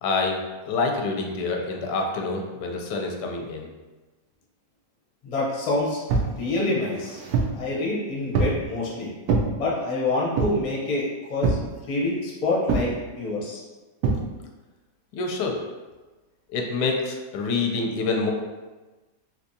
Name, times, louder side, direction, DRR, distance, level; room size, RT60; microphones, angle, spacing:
voice 1, 0.0-3.7 15.2-15.6 16.5-18.3, left 3 dB, 85° left, 2 dB, 1.2 m, -27 dB
voice 2, 5.2-6.0 6.4-7.2 7.6-9.1 9.6-11.6 11.9-12.9 13.2-13.6, left 2 dB, 45° left, -5 dB, 0.5 m, -26 dB
sound 1, 6.1-6.4 6.9-7.6 8.3-8.6 9.3-9.5 10.4-10.7 11.4-11.7 12.7-12.9 14.0-14.2, right 4 dB, 70° right, 1.0 m, -24 dB
3.4 x 2.7 x 2.6 m, 1.2 s
omnidirectional pair, 1.8 m